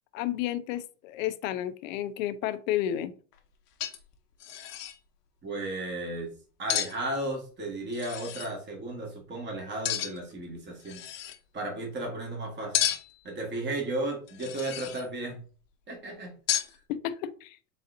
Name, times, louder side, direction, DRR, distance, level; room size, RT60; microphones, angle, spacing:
voice 1, 0.1-3.1 16.9-17.6, left 12 dB, 55° left, 12 dB, 0.6 m, -31 dB
sound 1, 3.3-3.4 3.8-4.1 4.4-5.0 6.7-7.0 7.9-8.5 9.8-10.3 10.8-11.4 12.7-13.2 14.3-15.1 16.5-16.8, left 12 dB, 80° left, 0.9 m, -32 dB
voice 2, 5.4-6.3 6.6-11.0 11.5-12.9 13.2-15.4 15.9-16.4, right 2 dB, 25° right, 0 dB, 1.6 m, -34 dB
4.0 x 4.0 x 2.6 m, 0.38 s
hypercardioid pair, 125°, 46 cm